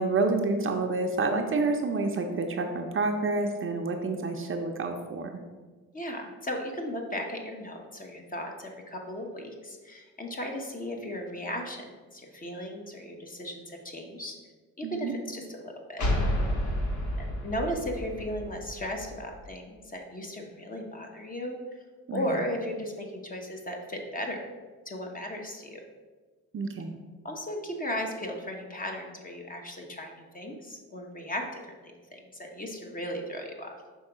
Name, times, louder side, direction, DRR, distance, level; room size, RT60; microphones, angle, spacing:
voice 1, 0.0-5.4 14.8-15.2 22.1-22.3 26.5-27.0, right 3 dB, 40° right, 4 dB, 0.6 m, -28 dB
voice 2, 5.9-11.8 12.1-14.4 14.8-16.1 17.2-21.8 22.1-24.5 24.8-25.8 27.2-33.7, equal, 25° left, 2 dB, 1.0 m, -36 dB
sound 1, 16.0-19.5, left 1 dB, 60° left, 1.2 m, -30 dB
5.5 x 3.5 x 4.9 m, 1.4 s
cardioid pair, 85°, 33 cm